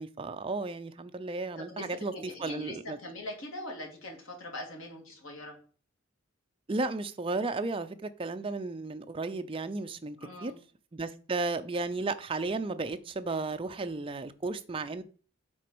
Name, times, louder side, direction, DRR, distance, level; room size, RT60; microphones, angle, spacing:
voice 1, 0.0-2.1 2.4-3.0 6.7-10.5 10.9-15.0, right 3 dB, 25° right, 0.4 m, -34 dB
voice 2, 1.6-5.6 10.2-10.6, left 1 dB, 75° left, 2.1 m, -42 dB
6.2 x 3.8 x 6.0 m
head